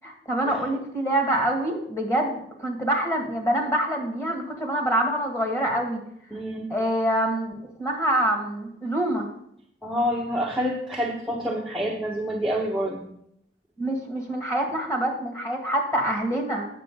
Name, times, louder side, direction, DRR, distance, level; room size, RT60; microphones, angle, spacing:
voice 1, 0.0-6.0 6.7-7.5 7.8-9.3 13.8-16.7, right 1 dB, 15° left, 2 dB, 1.7 m, -25 dB
voice 2, 6.3-6.7 9.8-13.1, equal, ahead, -3 dB, 0.8 m, -27 dB
8.5 x 6.7 x 5.2 m, 0.73 s
head